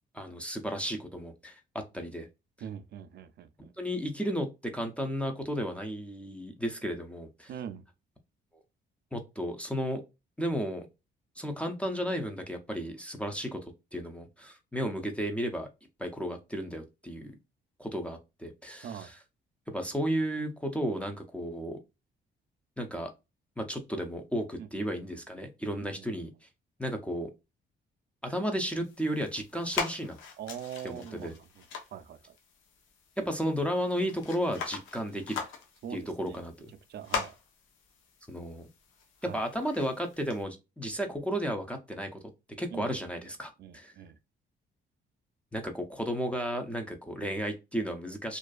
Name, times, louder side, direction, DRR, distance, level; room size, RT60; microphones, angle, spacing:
voice 1, 0.1-2.3 3.6-7.5 9.1-10.0 10.4-10.9 11.4-15.7 16.0-17.3 17.8-19.1 19.7-21.8 22.8-23.1 23.6-26.3 26.8-27.3 28.2-30.2 30.8-31.3 33.2-35.4 35.9-36.7 38.3-38.7 39.2-42.2 42.6-43.9 45.5-48.4, equal, 5° left, 0.4 m, -33 dB
voice 2, 2.6-3.7 7.5-7.9 18.8-19.1 24.6-24.7 25.8-26.2 30.4-31.6 31.9-32.4 35.8-36.4 36.9-37.4 39.2-39.4 42.7-42.9 43.6-44.2, right 9 dB, 60° right, 0.4 m, -42 dB
sound 1, 28.8-40.4, left 6 dB, 85° left, 0.6 m, -41 dB
2.5 x 2.2 x 2.3 m
cardioid pair, 90°, 20 cm